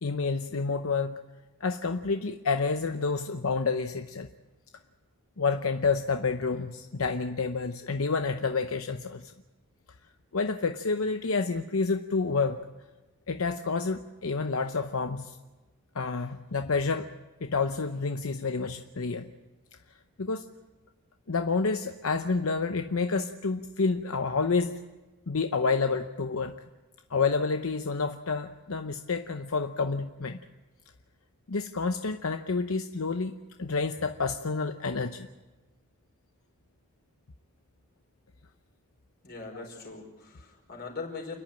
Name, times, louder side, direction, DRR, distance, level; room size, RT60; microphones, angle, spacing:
voice 1, 0.0-1.2 1.6-4.3 5.4-9.3 10.3-12.6 13.3-15.4 15.9-17.1 17.4-19.3 20.2-20.4 21.3-24.8 25.3-26.5 27.1-30.4 31.5-35.3, left 4 dB, 80° left, 7 dB, 0.8 m, -29 dB
voice 2, 39.2-41.4, left 4 dB, 50° left, 2 dB, 4.9 m, -40 dB
29.0 x 11.0 x 8.8 m, 1.1 s
head